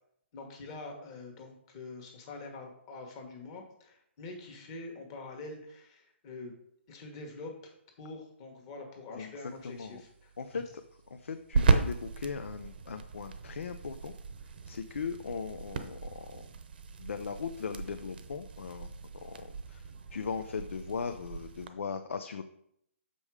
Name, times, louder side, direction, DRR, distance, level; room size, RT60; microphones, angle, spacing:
voice 1, 0.3-6.6 6.9-10.6, left 3 dB, 25° left, 2 dB, 1.5 m, -45 dB
voice 2, 9.2-10.0 10.4-10.8 11.1-14.1 14.7-16.5 17.0-22.4, left 5 dB, 85° left, 7 dB, 0.7 m, -39 dB
sound 1, 9.5-21.7, right 5 dB, 45° right, 0.8 m, -35 dB
6.8 x 5.5 x 4.8 m, 0.71 s
hypercardioid pair, 170°, 7 cm